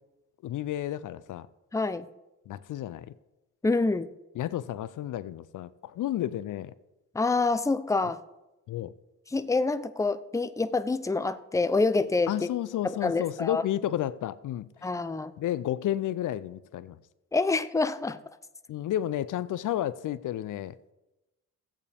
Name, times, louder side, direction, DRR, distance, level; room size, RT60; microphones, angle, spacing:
voice 1, 0.4-1.5 2.5-3.1 4.4-6.7 8.7-8.9 12.3-14.9 15.4-17.0 18.7-20.9, left 12 dB, 70° left, 0.5 m, -32 dB
voice 2, 1.7-2.1 3.6-4.1 7.1-8.2 9.3-12.5 12.8-13.6 14.8-15.3 17.3-18.2, left 3 dB, 10° left, 0.6 m, -27 dB
14.0 x 8.4 x 3.5 m
supercardioid pair, 60°, 32 cm